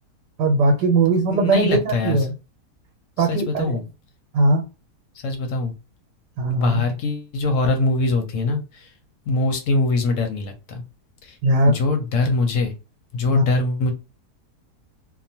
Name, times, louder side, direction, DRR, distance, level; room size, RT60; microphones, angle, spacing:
voice 1, 0.4-2.3 3.2-3.8 4.3-4.6 6.4-6.8 11.4-11.8 13.3-13.4, right 2 dB, 85° right, 3 dB, 1.3 m, -19 dB
voice 2, 1.3-2.2 3.2-3.8 5.2-5.7 6.5-8.9 9.3-10.8 11.2-11.4 11.7-12.7 13.1-13.9, left 2 dB, 65° left, 5 dB, 0.9 m, -23 dB
2.9 x 2.1 x 2.7 m, 0.30 s
omnidirectional pair, 1.8 m